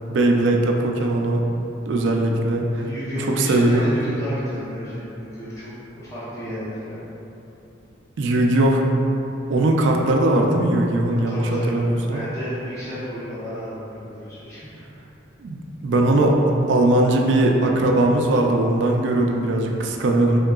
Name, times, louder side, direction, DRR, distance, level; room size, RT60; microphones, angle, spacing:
voice 1, 0.1-1.4 1.9-2.9 3.3-4.0 8.2-8.8 9.5-12.2 15.4-16.4 16.7-20.4, right 1 dB, 70° right, 1 dB, 0.4 m, -19 dB
voice 2, 2.8-7.0 11.3-11.8 12.1-15.0, equal, 15° left, -12 dB, 0.7 m, -32 dB
3.7 x 3.6 x 2.3 m, 3.0 s
head